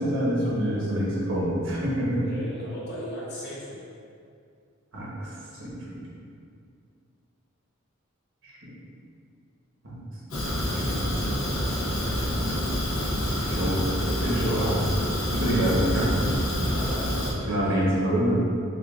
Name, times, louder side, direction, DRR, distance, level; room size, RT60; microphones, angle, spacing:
voice 1, 0.0-2.3 4.9-5.3 5.6-6.0 8.4-8.5 9.8-10.0 10.6-11.1 13.4-14.7 15.3-16.2 17.5-18.5, right 1 dB, 75° right, -6 dB, 1.1 m, -26 dB
voice 2, 2.2-3.8 14.2-14.8 16.5-17.9, equal, 55° left, -7 dB, 1.1 m, -37 dB
Fire, 10.3-17.3, equal, 80° left, 0.8 m, -27 dB
6.4 x 2.3 x 2.4 m, 2.3 s
head